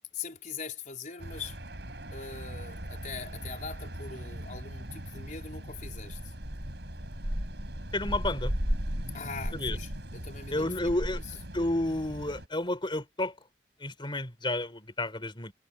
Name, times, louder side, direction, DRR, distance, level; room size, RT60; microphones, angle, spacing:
voice 1, 0.1-1.6 2.1-6.3 9.1-11.2, left 5 dB, 45° left, 4.7 m, -42 dB
sound 1, 1.2-12.5, equal, 70° right, 6.7 m, -37 dB
voice 2, 7.9-8.5 9.5-9.8 10.5-11.2 11.5-13.3 13.8-15.5, left 1 dB, 30° left, 4.4 m, -31 dB
head